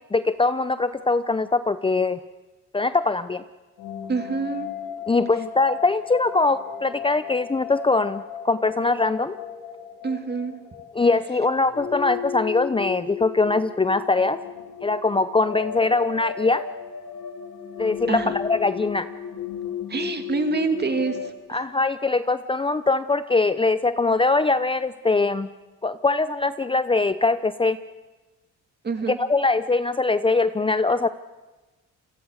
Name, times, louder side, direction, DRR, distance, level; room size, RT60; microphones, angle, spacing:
voice 1, 0.1-2.2 2.7-3.4 5.1-9.3 10.9-14.4 14.8-16.6 17.8-19.1 21.5-25.5 25.8-27.8 29.1-31.1, left 3 dB, 15° left, 13 dB, 0.7 m, -22 dB
sound 1, 3.8-21.3, left 8 dB, 75° left, 2.6 m, -35 dB
voice 2, 4.1-4.7 10.0-10.6 18.1-18.3 19.9-21.2 21.5-21.6 28.8-29.2, right 4 dB, 35° right, 7 dB, 2.4 m, -26 dB
28.5 x 22.5 x 6.5 m, 1.2 s
cardioid pair, 90°, 30 cm